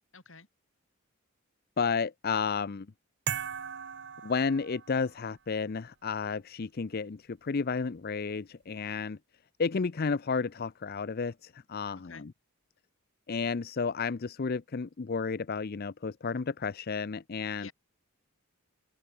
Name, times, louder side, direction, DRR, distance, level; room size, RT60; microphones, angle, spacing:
voice 1, 0.1-0.5 12.0-12.3 17.6-17.7, left 5 dB, 60° left, 5.2 m, -49 dB
voice 2, 1.8-2.9 4.2-9.2 9.6-12.3 13.3-17.7, left 5 dB, 45° left, 0.5 m, -32 dB
sound 1, 3.3-5.2, right 8 dB, 55° right, 0.9 m, -38 dB
open air
head